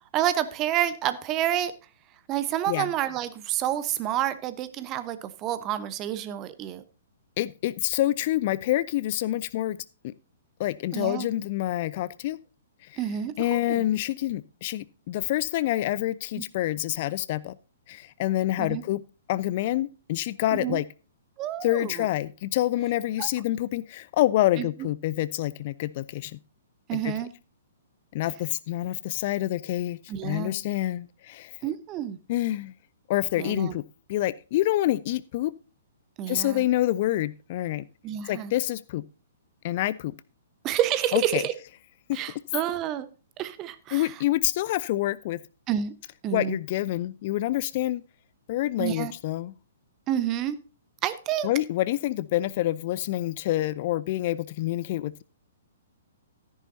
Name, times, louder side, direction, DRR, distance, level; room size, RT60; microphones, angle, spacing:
voice 1, 0.1-1.7 2.3-6.8 10.9-11.3 13.0-13.9 16.4-16.5 18.6-18.8 20.5-20.8 21.4-22.1 23.2-23.3 24.6-24.7 26.9-27.3 30.1-30.5 31.6-32.2 33.4-33.7 36.2-36.6 38.0-38.5 40.6-41.5 42.1-43.1 43.4-44.1 45.7-45.9 46.2-46.6 48.8-49.1 50.1-50.6 51.0-51.5, right 11 dB, 25° right, 14 dB, 0.9 m, -29 dB
voice 2, 7.4-9.8 10.0-10.1 10.6-12.4 12.9-13.0 13.4-17.6 17.9-19.0 19.3-20.8 21.6-26.4 26.9-27.1 28.1-31.6 32.3-32.7 33.1-33.8 34.1-35.5 36.3-37.8 38.3-39.0 39.6-40.1 41.1-41.4 42.1-42.2 43.9-45.4 46.3-48.0 48.5-49.5 51.4-55.2, left 15 dB, 40° left, 19 dB, 0.4 m, -27 dB
13.5 x 10.5 x 2.7 m, 0.34 s
figure-of-eight pair, 115°, 0 cm